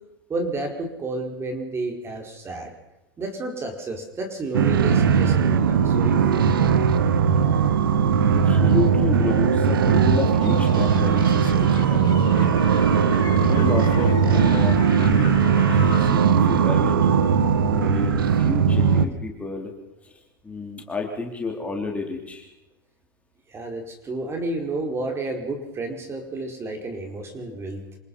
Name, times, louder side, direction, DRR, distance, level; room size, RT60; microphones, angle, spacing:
voice 1, 0.3-2.7 3.2-6.5 23.5-27.8, right 2 dB, 20° right, 4 dB, 4.9 m, -31 dB
sound 1, 4.5-19.1, right 6 dB, 90° right, 1.7 m, -19 dB
voice 2, 8.3-12.9 13.4-17.1 17.6-19.7 20.0-20.1 20.4-22.5, left 3 dB, 10° left, 1 dB, 3.9 m, -31 dB
sound 2, 10.4-16.2, left 11 dB, 40° left, 2.6 m, -38 dB
27.5 x 19.0 x 5.6 m, 0.95 s
hypercardioid pair, 115°, 11 cm